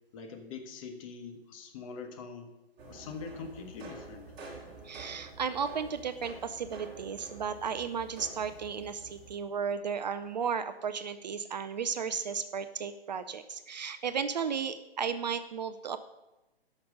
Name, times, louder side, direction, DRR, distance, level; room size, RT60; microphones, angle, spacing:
voice 1, 0.1-2.5 2.9-4.2, left 5 dB, 30° left, 4 dB, 1.4 m, -43 dB
sound 1, 2.8-9.4, right 3 dB, 30° right, 2.7 m, -48 dB
voice 2, 4.8-16.0, right 6 dB, 45° right, 11 dB, 0.5 m, -34 dB
12.0 x 6.0 x 6.6 m, 1.0 s
figure-of-eight pair, 130°, 31 cm